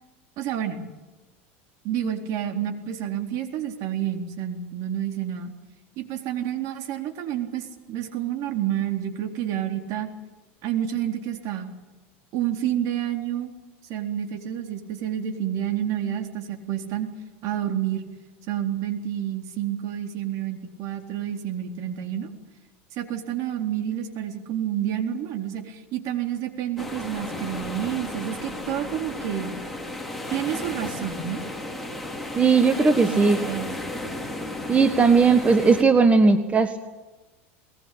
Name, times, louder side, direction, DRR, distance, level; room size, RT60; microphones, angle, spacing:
voice 1, 0.4-0.8 1.8-5.5 6.0-10.1 10.6-11.7 12.3-13.5 13.9-17.1 17.4-18.0 18.5-22.3 22.9-29.5 30.3-31.4 33.1-33.7, right 10 dB, 55° right, 4 dB, 3.9 m, -29 dB
sound 1, 26.8-35.8, left 1 dB, ahead, 3.7 m, -34 dB
voice 2, 32.3-33.4 34.7-36.8, right 4 dB, 20° right, 8 dB, 1.5 m, -18 dB
21.5 x 20.0 x 8.7 m, 1.1 s
supercardioid pair, 110°, 7 cm